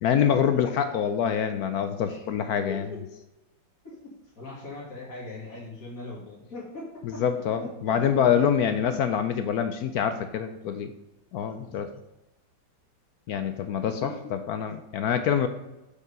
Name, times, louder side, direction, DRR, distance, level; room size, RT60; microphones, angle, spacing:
voice 1, 0.0-2.8 7.2-10.9 11.3-11.9 13.3-15.5, left 8 dB, 75° left, 9 dB, 0.9 m, -25 dB
voice 2, 2.7-3.0 3.8-7.2 7.6-8.3 8.6-8.7 11.7-11.8 13.8-14.4, left 3 dB, 45° left, -6 dB, 2.3 m, -40 dB
7.2 x 4.6 x 6.6 m, 0.98 s
omnidirectional pair, 2.1 m